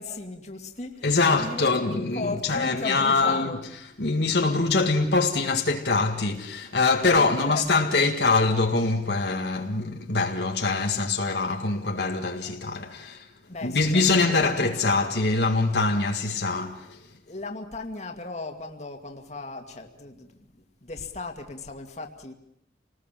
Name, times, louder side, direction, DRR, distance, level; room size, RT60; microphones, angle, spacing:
voice 1, 0.0-3.6 7.1-7.9 12.9-13.1 13.5-14.9 17.3-20.3 20.6-22.3, left 3 dB, 40° left, 2.3 m, -37 dB
voice 2, 1.0-3.6 4.0-13.3 13.6-17.0, left 3 dB, 70° left, 1.8 m, -24 dB
29.0 x 19.5 x 7.5 m
head